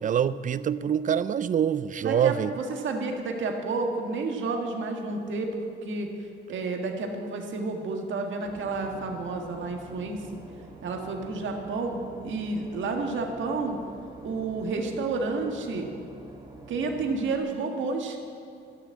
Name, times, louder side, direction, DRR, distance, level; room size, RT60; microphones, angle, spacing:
voice 1, 0.0-2.5, right 8 dB, 40° right, 16 dB, 0.4 m, -25 dB
voice 2, 2.0-6.1 6.5-10.2 10.8-13.8 14.2-15.9 16.7-18.2, right 3 dB, 70° right, 3 dB, 1.7 m, -30 dB
Boat Water vehicle / Engine, 8.4-17.4, right 2 dB, 20° right, 1.8 m, -47 dB
12.5 x 7.1 x 8.6 m, 2.5 s
cardioid pair, 100°, 20 cm